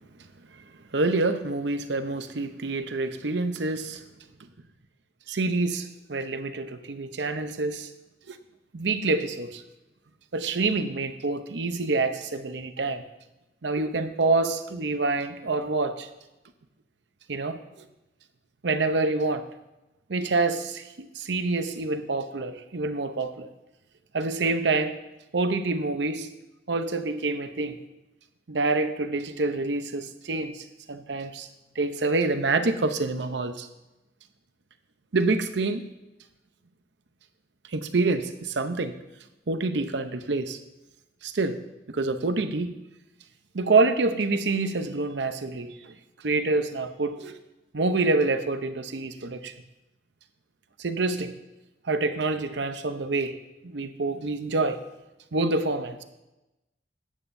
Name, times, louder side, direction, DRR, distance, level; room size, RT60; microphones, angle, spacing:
voice 1, 0.9-4.0 5.3-7.9 8.3-8.4 8.7-9.6 10.3-13.0 13.6-16.1 17.3-17.6 18.6-19.5 20.1-23.5 24.1-25.0 25.3-26.3 26.7-27.8 28.5-31.5 31.8-33.7 35.1-35.8 37.7-38.9 39.5-40.6 41.2-41.6 41.9-42.8 43.5-46.0 46.2-47.4 47.7-49.5 50.8-51.3 51.8-53.4 53.6-54.8 55.3-56.0, right 3 dB, 75° right, 9 dB, 0.7 m, -27 dB
13.5 x 9.1 x 2.7 m, 0.97 s
head